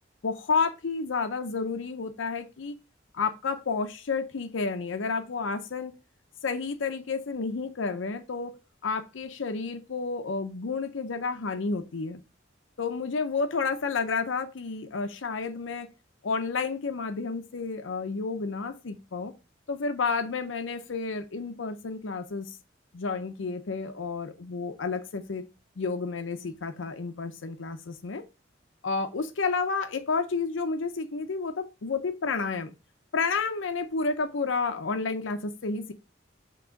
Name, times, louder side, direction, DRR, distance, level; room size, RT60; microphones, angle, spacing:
voice 1, 0.2-2.7 3.1-5.9 6.4-8.6 8.8-12.2 12.8-15.9 16.2-19.3 19.7-22.6 22.9-25.4 25.8-28.2 28.8-32.7 33.1-35.9, left 4 dB, 85° left, 0.6 m, -30 dB
6.1 x 3.0 x 5.7 m
head